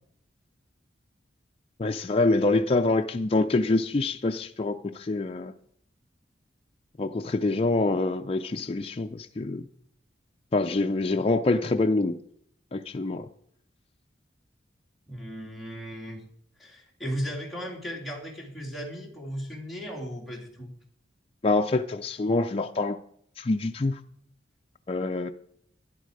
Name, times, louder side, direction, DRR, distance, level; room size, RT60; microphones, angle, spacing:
voice 1, 1.8-5.5 7.0-9.7 10.5-12.2 12.7-13.3 21.4-23.0 23.4-24.0 24.9-25.3, left 2 dB, 30° left, 0.4 m, -25 dB
voice 2, 15.1-16.2 16.6-20.7, equal, ahead, 2.5 m, -36 dB
12.5 x 10.0 x 4.8 m
head